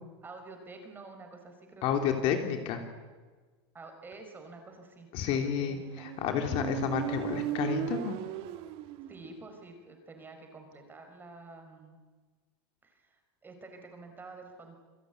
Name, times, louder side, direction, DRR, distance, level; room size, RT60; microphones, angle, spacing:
voice 1, 0.2-2.3 3.7-6.2 9.1-12.0 12.8-14.8, right 3 dB, 15° right, 5 dB, 5.4 m, -49 dB
voice 2, 1.8-2.8 5.1-8.2, left 8 dB, 45° left, 5 dB, 3.2 m, -30 dB
Motorcycle, 5.8-9.5, right 13 dB, 40° right, 2.1 m, -36 dB
28.0 x 21.5 x 9.7 m, 1.4 s
supercardioid pair, 155°, 14 cm